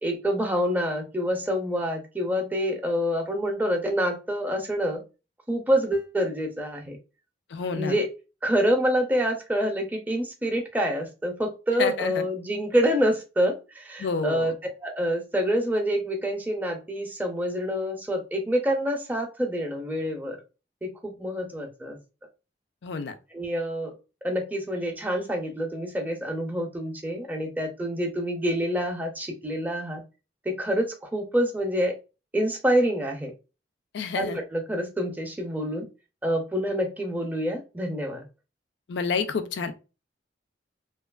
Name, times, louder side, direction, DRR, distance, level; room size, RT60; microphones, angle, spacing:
voice 1, 0.0-5.0 5.5-7.0 7.7-8.1 8.4-14.6 14.8-20.4 20.8-22.0 23.3-23.9 24.2-30.0 30.5-31.9 32.3-33.3 34.1-35.9 36.2-38.2, equal, 10° right, 0.5 m, -27 dB
voice 2, 7.5-7.9 11.8-12.2 14.0-14.5 22.8-23.1 33.9-34.4 38.9-39.7, left 5 dB, 65° left, 0.4 m, -29 dB
2.7 x 2.3 x 2.2 m
head